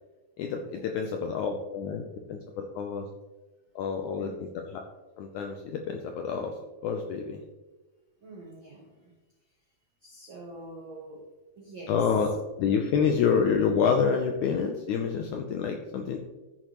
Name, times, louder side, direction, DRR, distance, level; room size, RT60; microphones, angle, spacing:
voice 1, 0.4-3.0 3.7-4.3 5.2-6.5 6.8-7.4 11.9-12.3 12.6-16.2, left 6 dB, 85° left, 3 dB, 1.8 m, -27 dB
voice 2, 4.2-4.5 8.2-9.2 9.5-9.6 10.0-11.3 11.5-12.2, right 2 dB, 75° right, -1 dB, 1.1 m, -45 dB
14.5 x 6.6 x 3.1 m, 1.2 s
omnidirectional pair, 4.3 m